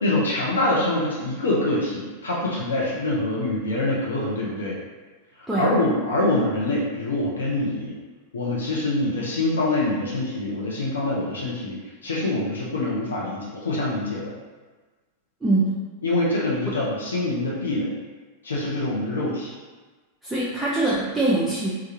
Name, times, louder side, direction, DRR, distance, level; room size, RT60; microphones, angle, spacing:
voice 1, 0.0-4.8 5.6-7.9 8.3-11.8 12.0-14.3 16.0-18.0 18.4-19.5, left 2 dB, 70° left, -5 dB, 0.6 m, -25 dB
voice 2, 15.4-15.7 16.7-16.8 20.2-21.7, right 2 dB, 5° right, -8 dB, 0.5 m, -23 dB
3.3 x 2.3 x 2.9 m, 1.3 s
figure-of-eight pair, 90°, 0 cm